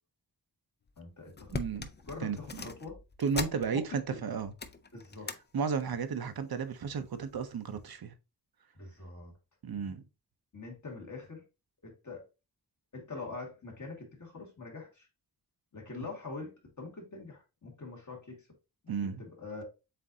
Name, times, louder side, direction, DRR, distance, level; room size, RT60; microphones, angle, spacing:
sound 1, 0.9-1.0 1.3-4.1 4.4-5.4 5.8-6.1 6.9-7.4 7.9-8.0, left 4 dB, 30° left, 0.4 m, -41 dB
voice 1, 1.0-1.5 2.0-3.0 3.3-4.2 4.9-5.3 8.7-9.3 10.5-11.4 11.8-12.3 12.9-15.1 15.7-18.5 18.8-19.6, left 3 dB, 50° left, 1.7 m, -44 dB
voice 2, 1.5-1.9 2.2-2.4 3.2-4.5 5.5-8.1 9.6-10.0 18.9-19.2, right 6 dB, 65° right, 0.6 m, -33 dB
7.4 x 2.6 x 2.7 m
wide cardioid pair, 115°, 39 cm